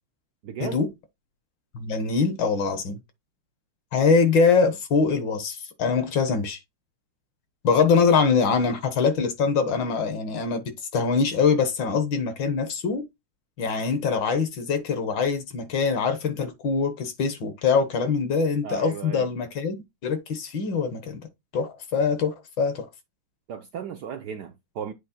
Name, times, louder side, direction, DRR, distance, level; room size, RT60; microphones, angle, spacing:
voice 1, 0.4-0.8 18.6-19.3 23.5-24.9, right 8 dB, 70° right, 1.0 m, -35 dB
voice 2, 1.7-3.0 3.9-6.6 7.6-13.0 13.6-19.7 20.0-21.2 21.5-22.9, left 5 dB, 60° left, 1.8 m, -23 dB
8.3 x 3.1 x 4.3 m
omnidirectional pair, 2.4 m